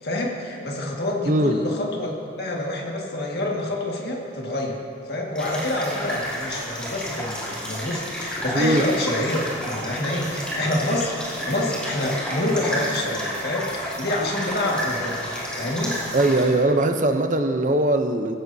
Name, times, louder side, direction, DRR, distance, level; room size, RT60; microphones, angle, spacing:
voice 1, 0.0-16.0, left 1 dB, 55° left, -1 dB, 1.9 m, -27 dB
voice 2, 1.3-1.6 8.5-8.9 16.1-18.3, right 2 dB, 40° right, 6 dB, 0.7 m, -20 dB
sound 1, 5.3-16.4, equal, 5° left, 3.2 m, -31 dB
17.5 x 15.5 x 2.8 m, 2.5 s
head